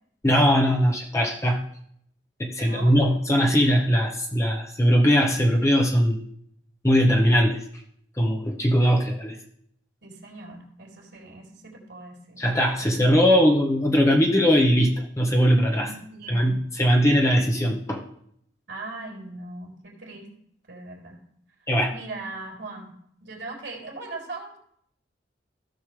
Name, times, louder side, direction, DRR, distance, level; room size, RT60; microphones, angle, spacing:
voice 1, 0.2-1.6 2.4-6.2 6.8-7.6 8.2-9.3 12.4-15.9 16.3-18.0 21.7-21.9, equal, 15° left, 0 dB, 1.0 m, -20 dB
voice 2, 2.6-3.0 10.0-12.4 12.8-13.0 15.8-16.5 18.7-20.3 20.7-21.2 21.9-24.6, right 3 dB, 75° right, -1 dB, 3.2 m, -39 dB
15.5 x 6.5 x 3.3 m, 0.70 s
head